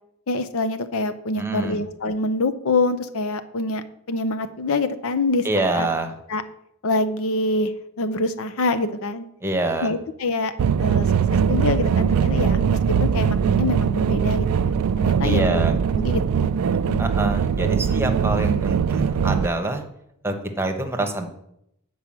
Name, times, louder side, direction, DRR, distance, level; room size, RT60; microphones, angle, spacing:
voice 1, 0.3-5.4 5.8-5.9 6.3-6.4 6.8-7.7 8.0-9.2 9.8-10.5 10.8-11.1 11.5-15.6 15.9-16.6 16.9-17.1, left 2 dB, 65° left, 10 dB, 0.7 m, -25 dB
voice 2, 1.3-1.8 5.4-6.1 9.4-9.9 15.2-15.8 17.0-19.8 20.2-21.3, right 2 dB, 10° right, 5 dB, 1.1 m, -25 dB
sound 1, 10.6-19.5, right 7 dB, 80° right, 0.4 m, -21 dB
9.3 x 4.8 x 7.3 m, 0.77 s
head